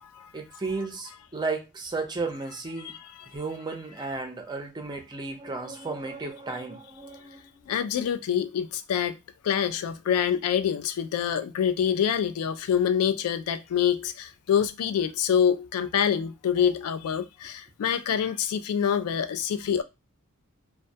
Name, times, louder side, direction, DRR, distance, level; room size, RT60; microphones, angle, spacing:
voice 1, 0.3-2.9 3.3-7.8 19.7-19.8, right 3 dB, 20° right, 0.5 m, -34 dB
voice 2, 2.8-3.3 7.7-9.2 9.4-19.8, left 8 dB, 80° left, 0.3 m, -26 dB
2.2 x 2.1 x 2.6 m
head